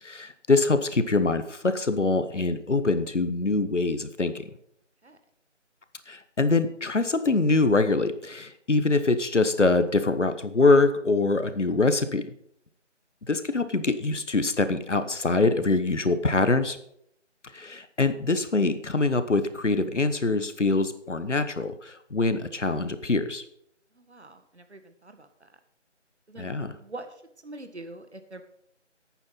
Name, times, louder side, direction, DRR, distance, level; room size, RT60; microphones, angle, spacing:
voice 1, 0.0-4.3 6.1-12.3 13.3-16.8 17.5-23.4 26.4-26.7, left 3 dB, 75° left, 11 dB, 1.3 m, -24 dB
voice 2, 23.9-25.6 26.3-26.5 26.8-28.4, right 2 dB, 60° right, 8 dB, 1.6 m, -44 dB
10.0 x 9.0 x 5.5 m, 0.69 s
figure-of-eight pair, 175°, 37 cm